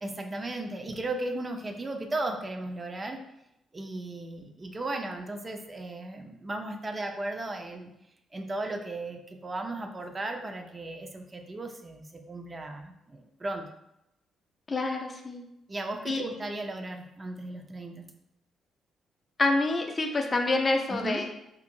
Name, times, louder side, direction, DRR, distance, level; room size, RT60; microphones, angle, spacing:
voice 1, 0.0-3.2 3.7-7.9 8.3-13.7 15.7-18.1 20.9-21.2, right 2 dB, 30° right, 4 dB, 0.4 m, -36 dB
voice 2, 14.7-15.4 16.1-16.2 19.4-21.3, left 2 dB, 35° left, 3 dB, 0.4 m, -27 dB
2.6 x 2.5 x 2.6 m, 0.84 s
hypercardioid pair, 45°, 0 cm